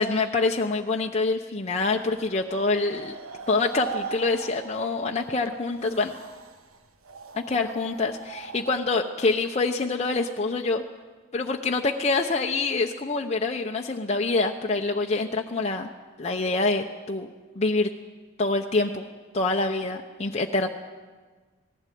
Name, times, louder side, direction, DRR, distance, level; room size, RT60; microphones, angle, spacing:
voice 1, 0.0-3.2 3.5-6.1 7.3-10.8 11.3-15.9 16.2-17.3 17.6-17.9 18.4-19.1 19.3-20.7, left 3 dB, 30° left, 2 dB, 0.8 m, -26 dB
sound 1, 1.8-8.9, right 5 dB, 80° right, 1.5 m, -41 dB
19.5 x 15.5 x 9.3 m, 1.4 s
head